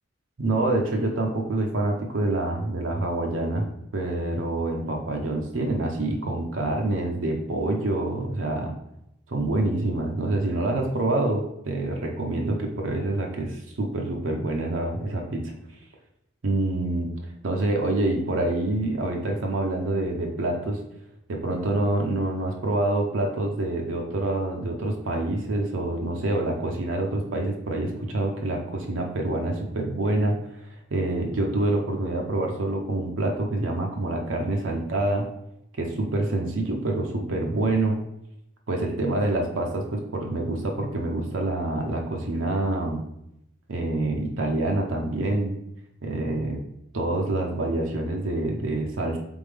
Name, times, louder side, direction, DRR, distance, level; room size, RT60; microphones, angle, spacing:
voice 1, 0.4-3.7 3.9-8.7 9.3-15.5 16.4-17.1 17.4-20.8 21.3-30.4 30.9-35.3 35.8-38.0 38.7-43.0 43.7-45.6 46.0-46.6 46.9-49.2, right 2 dB, 75° right, 1 dB, 0.6 m, -26 dB
3.8 x 3.6 x 3.4 m, 0.80 s
head